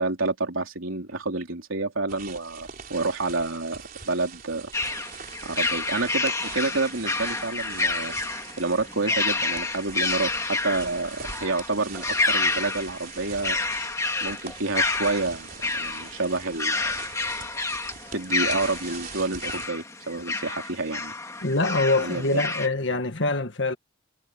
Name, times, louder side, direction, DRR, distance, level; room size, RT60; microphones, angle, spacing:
voice 1, 0.0-5.1 5.4-8.1 8.6-13.6 14.2-16.9 18.1-21.1 22.0-22.4, right 3 dB, 80° right, 3.6 m, -29 dB
sound 1, 2.1-19.7, right 6 dB, 45° right, 4.0 m, -43 dB
sound 2, 4.7-22.7, left 3 dB, 15° left, 1.6 m, -29 dB
voice 2, 21.4-23.8, left 2 dB, 60° left, 1.5 m, -24 dB
head